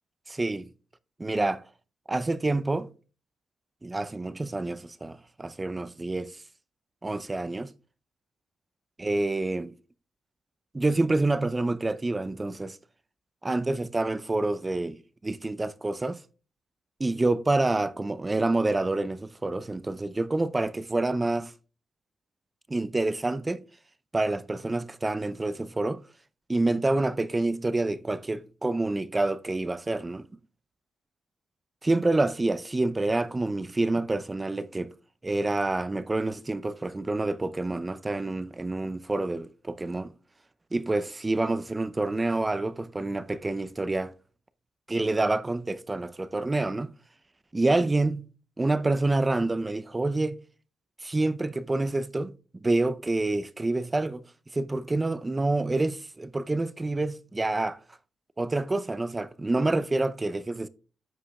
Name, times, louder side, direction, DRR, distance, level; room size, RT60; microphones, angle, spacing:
voice 1, 0.3-0.7 1.2-1.6 2.1-2.9 3.8-6.4 7.0-7.7 9.0-9.7 10.7-12.8 13.4-16.2 17.0-21.5 22.7-23.6 24.1-26.0 26.5-30.3 31.8-34.9 35.2-40.1 40.7-44.1 44.9-46.9 47.5-48.3 48.6-50.4 51.0-52.3 52.6-54.2 54.5-57.8 58.4-60.7, right 2 dB, 25° right, 0.6 m, -27 dB
13.5 x 5.0 x 2.3 m
supercardioid pair, 65°, 0 cm